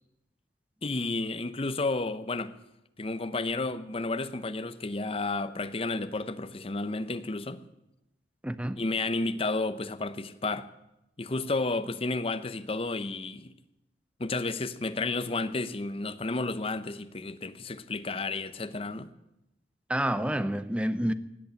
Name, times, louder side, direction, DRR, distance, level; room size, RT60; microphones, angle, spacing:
voice 1, 0.8-2.5 3.0-7.6 8.8-10.7 11.2-13.5 14.2-19.1, left 3 dB, 35° left, 0.8 m, -32 dB
voice 2, 8.4-8.8 19.9-21.1, right 1 dB, 5° right, 0.6 m, -28 dB
17.5 x 8.4 x 8.9 m
head